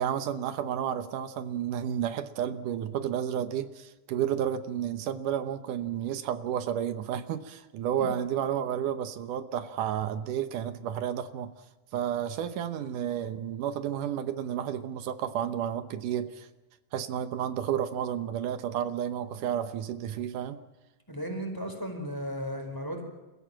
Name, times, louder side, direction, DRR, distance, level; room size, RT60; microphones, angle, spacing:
voice 1, 0.0-11.5 11.9-16.5 16.9-20.6, right 9 dB, 80° right, 11 dB, 2.5 m, -31 dB
voice 2, 21.1-23.0, equal, 5° left, 4 dB, 4.2 m, -35 dB
29.5 x 15.5 x 7.5 m, 1.1 s
omnidirectional pair, 3.6 m